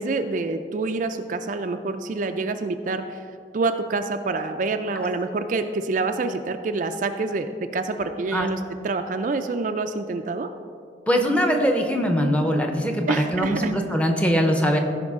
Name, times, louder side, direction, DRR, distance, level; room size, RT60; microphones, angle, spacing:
voice 1, 0.0-3.2 3.5-10.5 13.1-13.7, right 3 dB, 45° right, 7 dB, 0.4 m, -27 dB
voice 2, 11.1-14.8, equal, 5° left, 3 dB, 0.7 m, -22 dB
14.5 x 5.2 x 3.6 m, 2.4 s
head